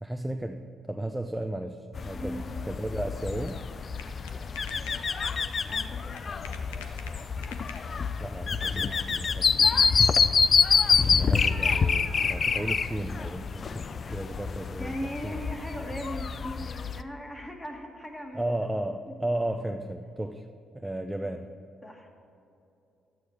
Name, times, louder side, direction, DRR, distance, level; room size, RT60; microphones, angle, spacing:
voice 1, 0.0-3.6 8.2-9.8 10.9-15.4 18.3-20.5 20.7-21.5, right 1 dB, 10° right, 6 dB, 0.5 m, -34 dB
sound 1, 1.9-17.0, left 5 dB, 45° left, 0.4 m, -27 dB
voice 2, 2.1-2.5 5.7-6.4 14.8-18.6 21.2-21.3 21.8-22.1, equal, 10° left, 2 dB, 1.9 m, -39 dB
sound 2, 3.5-8.2, left 6 dB, 85° left, 0.6 m, -48 dB
11.5 x 8.4 x 4.6 m, 2.7 s
hypercardioid pair, 45°, 0 cm